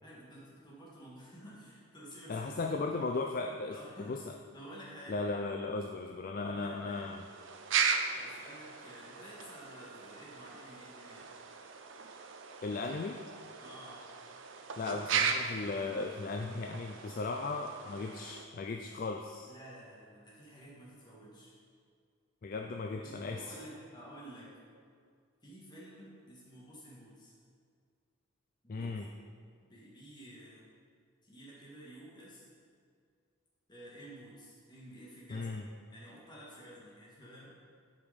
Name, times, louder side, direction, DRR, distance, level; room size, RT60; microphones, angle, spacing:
voice 1, 0.0-2.5 3.7-4.2 4.5-5.3 6.3-7.1 8.1-11.2 13.6-14.0 19.5-21.5 22.6-24.5 25.4-27.3 28.6-28.9 29.6-30.7 31.2-32.5 33.7-35.6 35.9-37.6, equal, 20° left, -6 dB, 1.8 m, -51 dB
voice 2, 2.3-4.2 5.1-7.2 12.6-13.2 14.8-19.5 22.4-23.6 28.7-29.1 35.3-35.6, left 3 dB, 40° left, 4 dB, 0.3 m, -36 dB
sound 1, 6.9-18.5, right 6 dB, 60° right, 0.5 m, -37 dB
8.3 x 5.1 x 5.2 m, 2.1 s
head